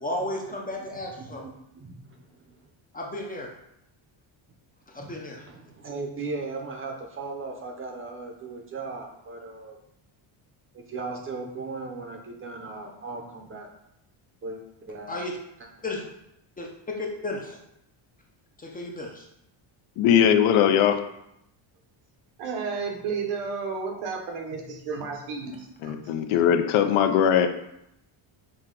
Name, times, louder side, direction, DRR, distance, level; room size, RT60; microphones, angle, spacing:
voice 1, 0.0-1.4 2.9-3.5 4.9-5.4 15.1-15.3 15.8-16.0 16.6-17.6 18.6-19.1, left 2 dB, 20° left, -1 dB, 0.4 m, -33 dB
voice 2, 0.9-2.6 5.0-9.8 10.7-13.7 14.4-15.1 15.6-15.7, right 3 dB, 25° right, 3 dB, 0.6 m, -38 dB
voice 3, 20.0-21.0 25.8-27.5, left 9 dB, 75° left, 8 dB, 0.6 m, -20 dB
voice 4, 22.4-26.0 26.3-26.4, right 5 dB, 80° right, 2 dB, 1.0 m, -32 dB
6.2 x 2.2 x 3.7 m, 0.80 s
cardioid pair, 140°, 50 cm